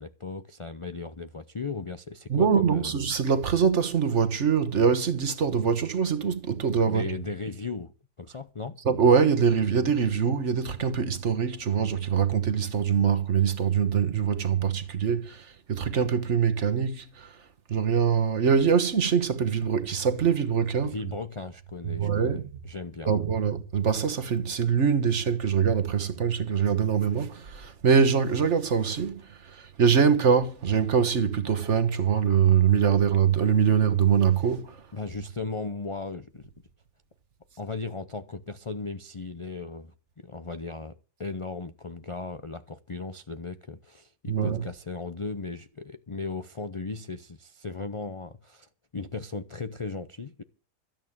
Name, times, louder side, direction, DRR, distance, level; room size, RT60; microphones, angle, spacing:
voice 1, 0.0-2.9 6.9-7.9 8.2-8.8 20.8-23.1 34.9-36.5 37.6-50.4, left 3 dB, 40° left, 0.4 m, -37 dB
voice 2, 2.3-7.1 8.8-17.4 17.7-20.9 21.9-22.5 23.1-34.8 44.3-44.6, right 7 dB, 55° right, 1.5 m, -24 dB
13.0 x 9.0 x 7.3 m
omnidirectional pair, 1.5 m